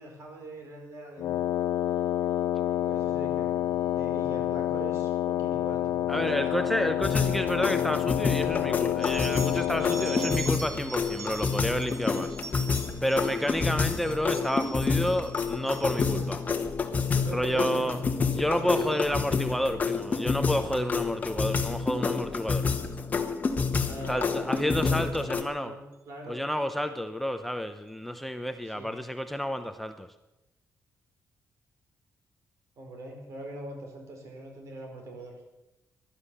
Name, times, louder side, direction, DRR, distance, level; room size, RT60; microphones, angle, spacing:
voice 1, 0.0-1.5 2.7-7.4 10.0-10.2 13.2-13.4 15.9-16.5 17.1-18.2 18.5-20.1 23.9-26.4 28.6-29.0 32.8-35.5, right 2 dB, 60° right, 2 dB, 4.8 m, -42 dB
Wind instrument woodwind instrument, 1.2-10.5, left 12 dB, 85° left, 0.5 m, -28 dB
voice 2, 6.1-12.4 13.0-16.4 17.3-18.0 18.3-22.7 24.1-25.7 26.3-30.1, equal, 5° left, 7 dB, 0.7 m, -30 dB
sound 1, 7.0-25.4, left 5 dB, 30° left, 1.3 m, -29 dB
sound 2, 9.0-16.3 16.8-17.2 17.5-17.9 18.3-19.7 20.6-20.9 21.8-22.0 22.9-23.0 23.4-23.5 24.1-24.3, right 5 dB, 85° right, 2.1 m, -44 dB
15.5 x 11.5 x 7.1 m, 0.96 s
cardioid pair, 155°, 5 cm